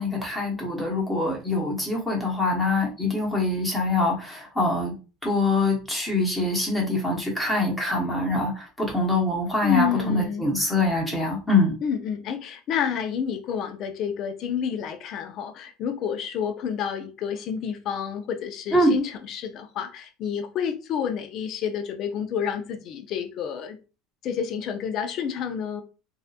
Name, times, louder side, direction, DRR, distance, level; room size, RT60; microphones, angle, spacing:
voice 1, 0.0-4.9 5.2-11.8 18.7-18.9, left 2 dB, 10° left, -2 dB, 1.0 m, -24 dB
voice 2, 9.6-10.5 11.8-23.8 24.2-25.8, left 7 dB, 50° left, 8 dB, 0.4 m, -29 dB
2.7 x 2.1 x 2.4 m, 0.33 s
supercardioid pair, 115°, 0 cm